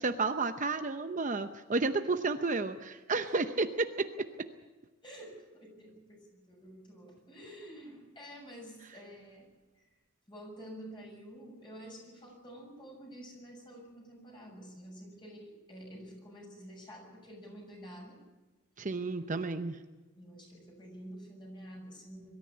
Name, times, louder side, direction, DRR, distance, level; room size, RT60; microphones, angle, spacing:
voice 1, 0.0-4.1 18.8-19.8, right 3 dB, 40° right, 8 dB, 0.8 m, -31 dB
voice 2, 5.0-9.5 9.7-9.9 10.3-18.2 20.1-22.3, equal, 25° left, 1 dB, 6.8 m, -49 dB
23.0 x 13.5 x 8.7 m, 1.2 s
head